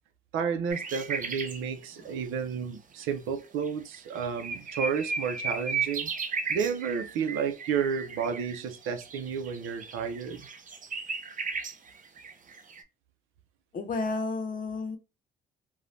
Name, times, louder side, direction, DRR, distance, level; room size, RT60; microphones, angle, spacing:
voice 1, 0.3-6.1 6.5-10.5, right 6 dB, 90° right, 0.5 m, -31 dB
sound 1, 0.7-1.6 3.0-3.1 3.7-3.8 3.9-12.8, right 5 dB, 40° right, 0.6 m, -35 dB
voice 2, 13.7-15.0, left 3 dB, 45° left, 0.7 m, -32 dB
3.2 x 2.2 x 2.6 m
cardioid pair, 90°, 20 cm